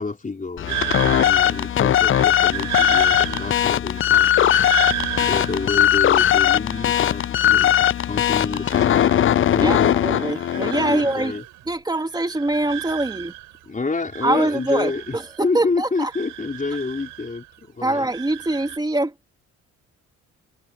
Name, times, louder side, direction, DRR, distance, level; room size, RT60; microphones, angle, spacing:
voice 1, 0.0-4.3 5.2-7.7 8.1-10.0 10.9-11.4 13.7-17.5 17.8-18.1, left 3 dB, 25° left, 4.8 m, -28 dB
sound 1, 0.6-11.1, left 11 dB, 45° left, 0.5 m, -19 dB
sound 2, 0.7-7.6 8.0-9.7 10.0-11.7 12.0-13.6 14.0-15.6 16.0-17.6 17.9-18.8, right 16 dB, 80° right, 4.8 m, -33 dB
voice 2, 9.6-11.3 11.7-13.3 14.2-16.1 17.8-19.1, right 2 dB, 15° right, 2.8 m, -24 dB
cardioid pair, 90°, 30 cm